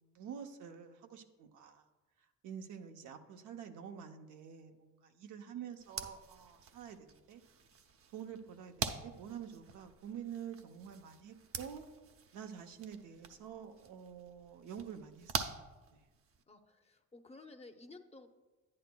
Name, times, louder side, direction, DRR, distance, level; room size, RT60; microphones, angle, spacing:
voice 1, 0.0-1.8 2.4-7.4 8.1-11.8 12.3-15.3 15.9-16.0, right 8 dB, 85° right, 5 dB, 0.7 m, -48 dB
voice 2, 2.7-3.1 5.4-5.7 16.5-18.3, left 3 dB, 20° left, 6 dB, 0.7 m, -55 dB
sound 1, 5.8-16.4, right 6 dB, 50° right, 0.6 m, -45 dB
10.0 x 9.7 x 2.2 m, 1.2 s
cardioid pair, 90°, 30 cm